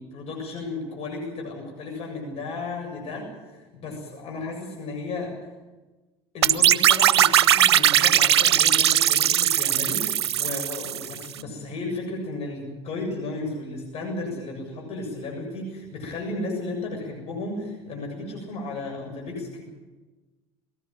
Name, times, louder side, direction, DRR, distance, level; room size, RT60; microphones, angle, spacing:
voice 1, 0.0-5.4 6.3-19.6, left 2 dB, 50° left, 1 dB, 7.4 m, -34 dB
sound 1, 6.4-11.2, right 11 dB, 85° right, 0.6 m, -19 dB
21.5 x 18.0 x 9.0 m, 1.2 s
hypercardioid pair, 70°, 13 cm